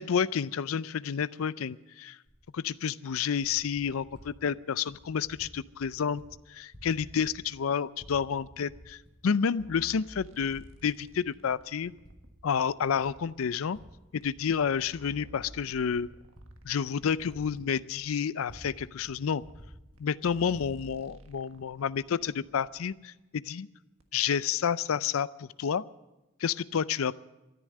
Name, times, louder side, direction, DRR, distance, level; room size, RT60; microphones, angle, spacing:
voice 1, 0.0-2.2 2.6-6.2 6.5-11.9 12.4-13.8 14.1-16.1 16.6-19.4 20.0-23.7 24.1-25.8 26.4-27.2, left 7 dB, 85° left, 19 dB, 0.4 m, -30 dB
Typing, 2.2-2.4 3.2-4.3 4.9-5.5 5.8-6.3 6.5-7.6 7.9-9.1 9.7-9.8 10.3-11.2 11.5-13.8 14.2-18.8 19.0-19.1 19.4-20.7, equal, 20° left, 5.4 m, -53 dB
sound 1, 9.6-12.3 13.3-13.4 14.2-14.3 14.7-17.6 18.5-18.6 19.5-19.6 20.0-20.1 20.3-23.0 24.0-24.1, right 1 dB, 75° right, 1.5 m, -53 dB
13.5 x 9.9 x 9.4 m, 0.99 s
head